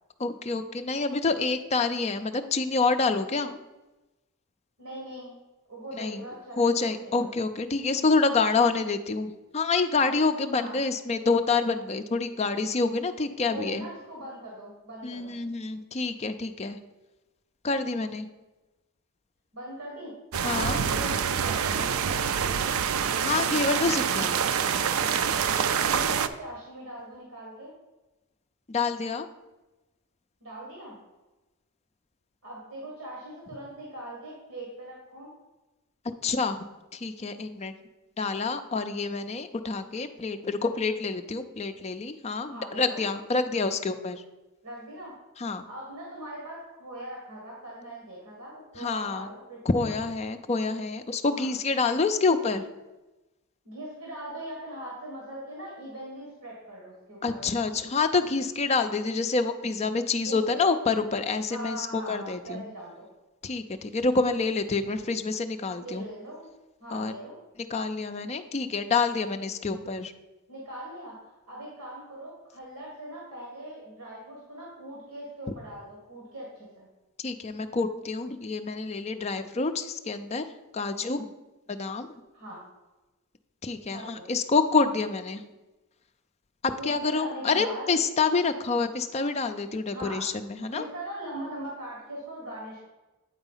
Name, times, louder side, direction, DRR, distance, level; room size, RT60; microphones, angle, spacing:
voice 1, 0.2-3.6 5.9-6.2 6.6-13.9 15.0-16.8 17.6-18.3 20.4-20.8 23.2-24.4 28.7-29.3 36.2-37.7 38.2-44.2 45.4-45.6 48.8-49.3 49.7-52.6 57.2-62.6 63.4-66.1 66.9-67.1 67.7-70.1 77.2-80.5 80.7-81.3 81.7-82.1 83.6-85.4 86.6-90.8, left 4 dB, 30° left, 8 dB, 0.4 m, -27 dB
voice 2, 4.8-5.3 5.7-7.3 10.6-10.8 13.5-15.4 19.5-20.2 20.4-22.7 25.5-27.7 30.4-31.0 32.4-35.3 42.5-43.0 44.6-45.1 45.7-49.9 51.3-51.5 53.7-57.5 60.2-60.6 61.5-63.0 65.8-66.5 66.8-67.4 70.5-76.9 82.3-82.6 83.9-84.2 86.8-87.9 89.9-90.2 90.7-92.8, right 1 dB, 85° right, -3 dB, 1.9 m, -40 dB
sound 1, 20.3-26.3, right 7 dB, 65° right, 0.4 m, -26 dB
8.9 x 4.0 x 5.5 m, 1.1 s
head